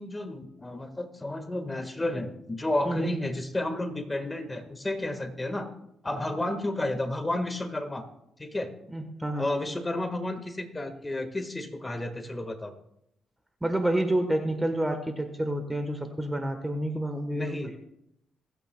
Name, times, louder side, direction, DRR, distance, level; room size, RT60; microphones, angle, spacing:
voice 1, 0.0-5.7 6.0-8.0 8.4-8.7 9.4-12.7 17.3-17.7, left 1 dB, 15° left, 8 dB, 1.6 m, -31 dB
voice 2, 8.9-9.5 13.6-17.9, right 1 dB, 10° right, 6 dB, 1.2 m, -29 dB
26.5 x 9.1 x 2.3 m, 0.79 s
cardioid pair, 90°, 0 cm